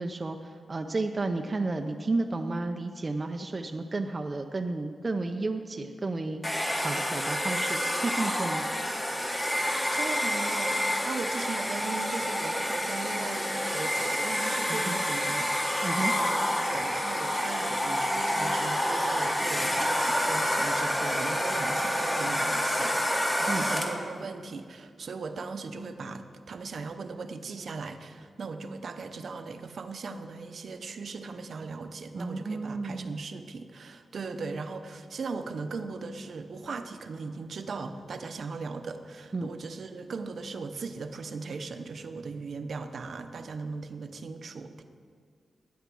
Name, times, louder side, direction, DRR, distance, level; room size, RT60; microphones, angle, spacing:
voice 1, 0.0-6.4 6.8-8.6 14.7-15.0 15.8-16.1 23.5-23.7 32.1-33.2 39.3-39.5, right 3 dB, 30° right, 4 dB, 0.5 m, -32 dB
Domestic sounds home sounds, 6.4-24.1, equal, 15° left, 1.1 m, -28 dB
voice 2, 9.9-44.8, right 4 dB, 55° right, 8 dB, 0.8 m, -38 dB
13.0 x 9.3 x 6.2 m, 2.1 s
wide cardioid pair, 145°, 0 cm